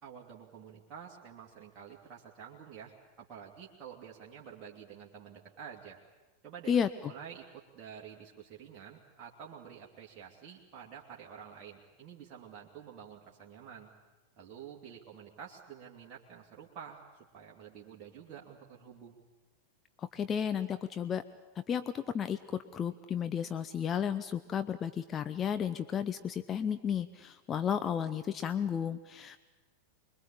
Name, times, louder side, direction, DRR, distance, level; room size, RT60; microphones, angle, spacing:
voice 1, 0.0-6.0 6.4-6.8 7.0-13.9 14.4-17.0 17.3-19.2, right 7 dB, 30° right, -3 dB, 2.7 m, -49 dB
voice 2, 20.0-21.2 21.6-29.4, left 8 dB, 25° left, 10 dB, 0.8 m, -33 dB
25.5 x 21.5 x 8.7 m, 1.2 s
figure-of-eight pair, 90°, 0 cm